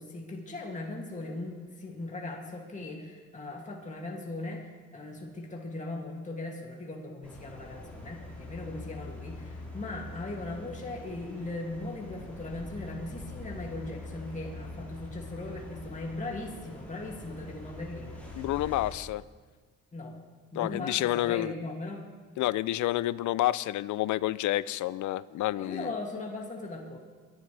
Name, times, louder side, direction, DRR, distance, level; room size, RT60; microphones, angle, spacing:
voice 1, 0.0-18.2 19.9-20.2 20.5-22.0 25.5-27.0, left 2 dB, 25° left, -1 dB, 2.4 m, -39 dB
sound 1, 7.2-18.9, left 1 dB, 5° left, 4.3 m, -44 dB
voice 2, 18.3-19.2 20.6-21.5 22.4-25.9, left 15 dB, 75° left, 19 dB, 0.5 m, -29 dB
23.5 x 11.5 x 3.4 m, 1.4 s
cardioid pair, 90°, 30 cm